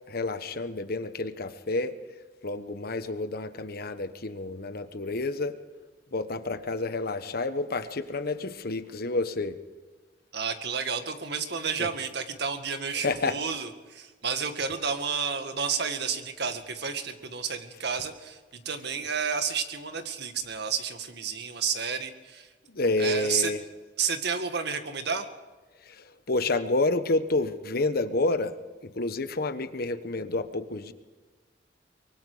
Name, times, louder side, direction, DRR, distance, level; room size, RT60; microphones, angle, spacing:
voice 1, 0.1-2.0 2.4-5.5 6.1-9.6 11.8-11.9 13.0-13.4 22.7-23.6 25.9-28.5 28.8-30.9, left 2 dB, 55° left, 10 dB, 1.2 m, -29 dB
voice 2, 10.3-22.5 23.0-23.5 24.0-25.3, right 6 dB, 65° right, 7 dB, 2.0 m, -31 dB
24.0 x 23.5 x 5.0 m, 1.3 s
head